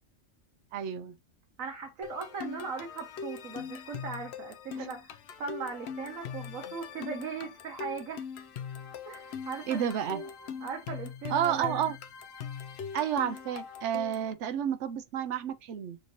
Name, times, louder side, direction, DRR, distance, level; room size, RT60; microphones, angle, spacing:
voice 1, 0.7-1.2 4.7-4.9 9.7-10.2 11.3-12.0 12.9-16.0, right 9 dB, 65° right, 0.9 m, -31 dB
voice 2, 1.6-8.2 9.1-10.3 10.6-11.8, right 5 dB, 90° right, 1.5 m, -39 dB
sound 1, 2.0-14.3, left 7 dB, 60° left, 0.8 m, -41 dB
6.4 x 2.7 x 3.0 m
omnidirectional pair, 1.4 m